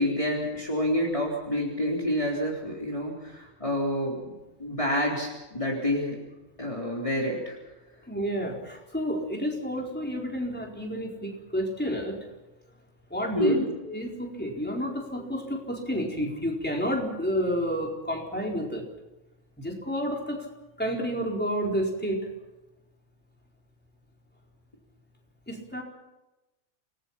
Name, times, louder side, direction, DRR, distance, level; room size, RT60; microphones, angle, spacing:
voice 1, 0.0-4.3 4.6-6.2 6.6-7.6 13.3-13.6, left 1 dB, 25° left, -3 dB, 3.7 m, -28 dB
voice 2, 8.1-12.2 13.1-18.8 19.6-20.5 20.8-22.3 25.5-25.8, equal, 10° left, -1 dB, 4.4 m, -30 dB
28.0 x 19.5 x 5.9 m, 1.0 s
omnidirectional pair, 1.3 m